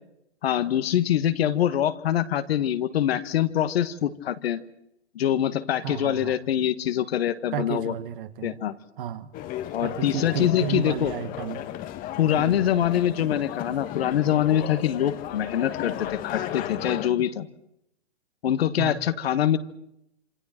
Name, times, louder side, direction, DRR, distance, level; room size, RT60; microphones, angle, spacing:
voice 1, 0.4-4.6 5.1-7.9 8.4-8.7 9.7-11.1 12.2-17.5 18.4-19.6, left 11 dB, 60° left, 11 dB, 1.5 m, -24 dB
voice 2, 5.8-6.4 7.5-8.6 9.0-9.3 9.8-11.7 12.3-12.6 18.8-19.0, right 10 dB, 50° right, 11 dB, 1.7 m, -32 dB
sound 1, 9.3-17.1, left 12 dB, 25° left, 1.2 m, -35 dB
27.5 x 27.5 x 4.4 m, 0.79 s
hypercardioid pair, 125°, 35 cm